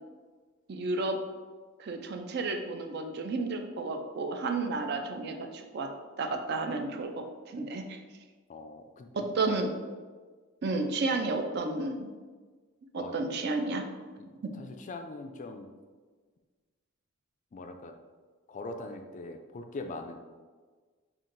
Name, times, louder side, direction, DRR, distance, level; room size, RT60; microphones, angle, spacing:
voice 1, 0.7-1.2 1.8-5.9 6.2-8.0 9.1-9.7 10.6-12.1 12.9-13.9 14.4-14.5, right 3 dB, 50° right, 5 dB, 0.4 m, -32 dB
voice 2, 8.5-9.6 13.0-13.2 14.0-15.7 17.5-17.9 18.5-20.2, left 2 dB, 35° left, 6 dB, 0.3 m, -42 dB
5.5 x 2.5 x 2.5 m, 1.4 s
head